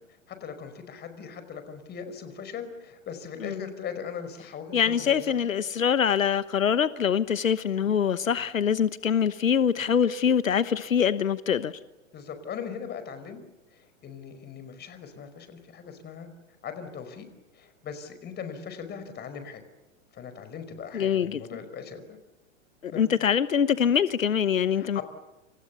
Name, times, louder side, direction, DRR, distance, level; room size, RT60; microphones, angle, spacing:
voice 1, 0.3-5.3 12.1-13.4 13.7-16.3 16.6-17.3 17.5-19.6 20.1-22.2 22.9-23.0 24.8-25.0, left 7 dB, 25° left, 5.1 m, -39 dB
voice 2, 3.4-3.7 4.7-11.7 20.9-21.4 22.8-25.0, left 8 dB, 80° left, 1.1 m, -24 dB
29.0 x 28.0 x 7.1 m
figure-of-eight pair, 110°, 39 cm